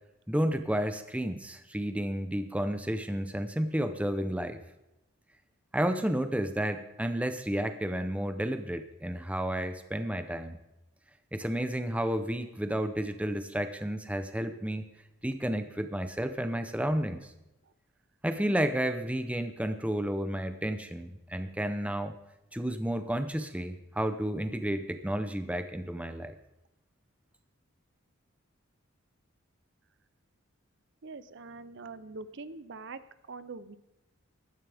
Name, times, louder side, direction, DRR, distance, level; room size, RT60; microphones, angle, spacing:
voice 1, 0.3-4.6 5.7-10.6 11.3-14.8 15.2-17.3 18.2-22.1 22.5-26.3, equal, 5° right, 8 dB, 0.7 m, -31 dB
voice 2, 31.0-33.0 33.3-33.8, right 3 dB, 55° right, 13 dB, 0.6 m, -43 dB
16.0 x 12.5 x 3.5 m, 0.94 s
head